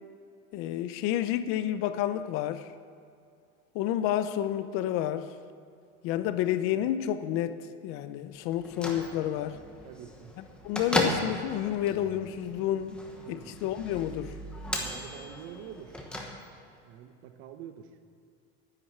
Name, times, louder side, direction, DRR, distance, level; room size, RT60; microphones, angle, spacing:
voice 1, 0.5-2.7 3.7-5.3 6.0-7.6 7.8-9.6 10.4-13.0 13.3-14.3, left 11 dB, 45° left, 12 dB, 0.7 m, -30 dB
Bell / Microwave oven, 8.5-16.8, left 1 dB, 5° left, 1.0 m, -36 dB
voice 2, 9.8-10.4 13.2-13.5 14.8-16.1 16.8-18.0, right 9 dB, 45° right, 9 dB, 0.9 m, -46 dB
10.0 x 9.7 x 7.3 m, 2.4 s
cardioid pair, 165°, 30 cm